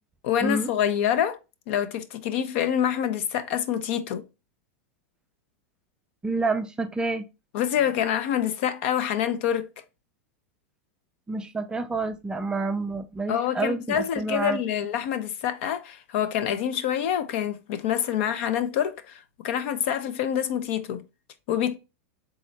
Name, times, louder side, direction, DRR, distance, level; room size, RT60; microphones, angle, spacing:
voice 1, 0.2-1.4 1.7-4.2 7.5-9.7 13.3-21.0 21.5-21.7, left 9 dB, 60° left, 0.6 m, -26 dB
voice 2, 6.2-7.3 11.3-14.6, right 3 dB, 10° right, 0.4 m, -28 dB
3.7 x 3.1 x 4.0 m
supercardioid pair, 140°, 7 cm